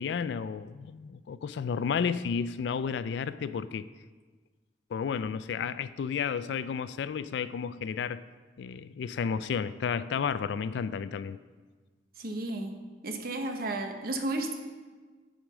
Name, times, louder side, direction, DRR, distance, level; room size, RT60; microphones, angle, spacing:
voice 1, 0.0-3.9 4.9-8.2 8.6-11.4, left 6 dB, 65° left, 15 dB, 0.3 m, -32 dB
voice 2, 12.2-12.8 13.0-14.5, right 2 dB, 50° right, 4 dB, 0.9 m, -33 dB
9.0 x 4.9 x 6.0 m, 1.4 s
head